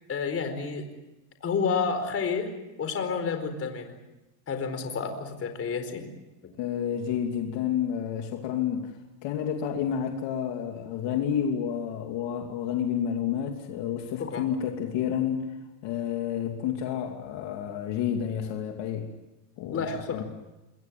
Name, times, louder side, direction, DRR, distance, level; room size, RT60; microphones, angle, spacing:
voice 1, 0.1-0.8 1.4-2.5 2.8-3.9 4.5-6.0 14.2-14.4 19.7-20.2, left 5 dB, 30° left, 7 dB, 4.5 m, -30 dB
voice 2, 6.6-8.9 9.2-15.5 15.8-19.1 19.6-20.2, left 9 dB, 60° left, 3 dB, 2.9 m, -30 dB
27.0 x 22.5 x 7.6 m, 1.0 s
cardioid pair, 135°, 47 cm